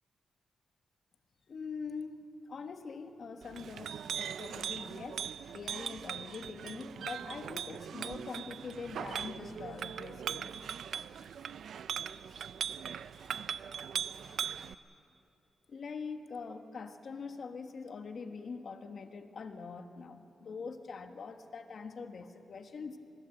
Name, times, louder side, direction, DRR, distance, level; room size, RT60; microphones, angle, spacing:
voice 1, 1.5-5.3 5.5-10.7 15.7-23.0, left 5 dB, 55° left, 7 dB, 1.5 m, -43 dB
Chink clink, 3.4-14.7, right 8 dB, 75° right, 0.6 m, -40 dB
23.5 x 21.5 x 7.9 m, 2.8 s
cardioid pair, 95°, 0 cm